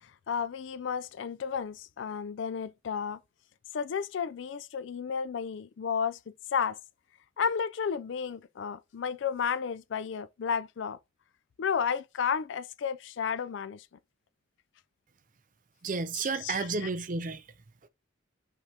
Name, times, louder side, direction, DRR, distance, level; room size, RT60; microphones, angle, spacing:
voice 1, 0.0-3.2 3.7-6.8 7.4-11.0 11.6-13.9 16.1-16.9, left 7 dB, 60° left, 0.4 m, -32 dB
voice 2, 15.8-17.4, right 4 dB, 40° right, 0.5 m, -31 dB
5.8 x 2.8 x 3.2 m
head